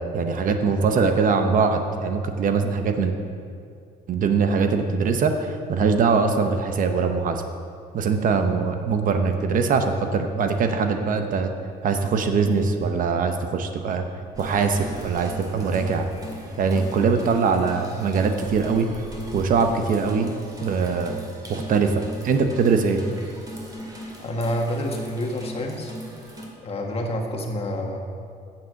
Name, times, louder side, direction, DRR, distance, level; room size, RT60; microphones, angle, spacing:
voice 1, 0.1-3.1 4.1-7.4 7.9-11.5 11.8-14.1 14.4-16.1 16.6-18.9 19.3-20.3 20.6-21.2 21.5-23.0, right 5 dB, 55° right, 6 dB, 0.8 m, -22 dB
sound 1, 14.3-26.5, right 1 dB, 20° right, 2.1 m, -39 dB
voice 2, 24.2-25.9 26.6-28.0, equal, 35° left, 1 dB, 1.5 m, -28 dB
9.2 x 7.2 x 6.4 m, 2.4 s
cardioid pair, 110°, 17 cm